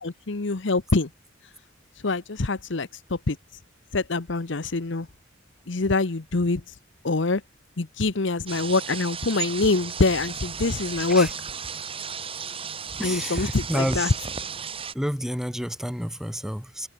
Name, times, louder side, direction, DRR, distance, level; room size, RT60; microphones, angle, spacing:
voice 1, 0.0-1.1 2.0-3.4 3.9-5.1 5.7-6.6 7.0-7.4 7.8-11.3 13.0-14.1, left 3 dB, 65° left, 1.0 m, -24 dB
sound 1, 8.5-14.9, right 5 dB, 30° right, 3.6 m, -34 dB
voice 2, 13.0-14.1 14.9-16.9, equal, ahead, 4.3 m, -30 dB
head